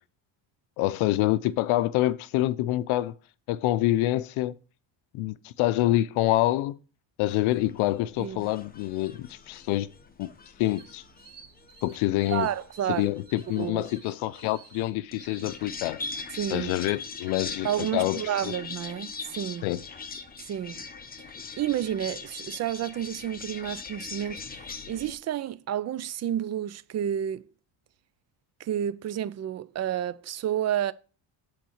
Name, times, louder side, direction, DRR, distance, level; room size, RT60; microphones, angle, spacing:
voice 1, 0.8-3.1 3.5-4.6 5.1-6.8 7.2-9.9 10.2-10.3 10.6-11.0 11.8-12.5 12.9-16.0 16.5-17.7 17.9-18.5 19.6-19.8, left 16 dB, 85° left, 0.6 m, -26 dB
sound 1, 7.3-25.1, left 4 dB, 20° left, 0.7 m, -42 dB
sound 2, 10.8-16.1, right 5 dB, 60° right, 1.4 m, -54 dB
voice 2, 12.3-13.1 13.6-13.9 16.3-16.7 17.6-19.7 20.4-20.8 21.6-27.5 28.6-30.9, right 10 dB, 35° right, 0.4 m, -30 dB
7.7 x 4.0 x 6.4 m
cardioid pair, 110°, 47 cm